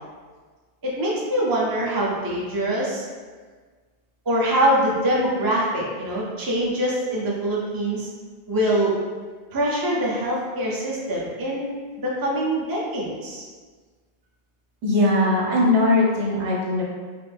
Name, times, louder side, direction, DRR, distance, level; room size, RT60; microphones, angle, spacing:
voice 1, 0.8-3.0 4.3-8.1 8.5-9.0 9.5-13.5, right 1 dB, 25° right, -4 dB, 0.5 m, -24 dB
voice 2, 14.8-16.8, left 2 dB, 75° right, -4 dB, 1.1 m, -20 dB
4.8 x 2.1 x 3.4 m, 1.5 s
omnidirectional pair, 1.2 m